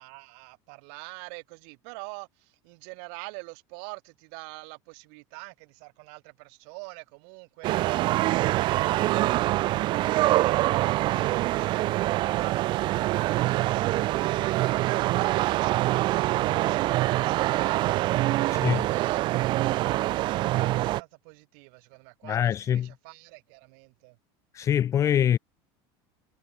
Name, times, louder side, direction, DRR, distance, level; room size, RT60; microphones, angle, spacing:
voice 1, 0.0-9.5 10.1-24.2, right 40 dB or more, 60° right, 4.9 m, -44 dB
sound 1, 7.6-21.0, right 17 dB, 40° right, 1.3 m, -25 dB
voice 2, 22.2-22.9 24.5-25.4, left 10 dB, 25° left, 0.9 m, -24 dB
supercardioid pair, 160°, 12 cm